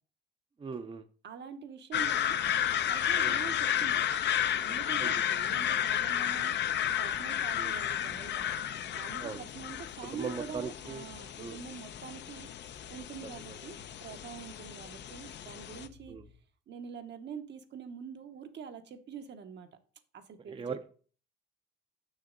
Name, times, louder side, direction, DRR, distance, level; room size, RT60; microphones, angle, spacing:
voice 1, 0.6-1.0 3.2-3.4 5.0-5.2 7.5-7.7 9.2-9.4 10.1-11.1 11.4-11.6 13.5-13.6 16.1-16.2 20.5-20.9, right 5 dB, 25° right, 8 dB, 0.6 m, -39 dB
voice 2, 1.2-2.4 2.8-4.0 4.6-6.6 7.0-8.5 8.9-12.5 12.9-16.2 16.7-19.7 20.1-20.8, right 6 dB, 60° right, 8 dB, 1.0 m, -45 dB
sound 1, 1.9-15.9, left 10 dB, 65° left, 0.6 m, -32 dB
sound 2, 6.8-16.4, left 4 dB, 85° left, 1.4 m, -59 dB
6.5 x 6.3 x 3.8 m, 0.41 s
cardioid pair, 90°, 20 cm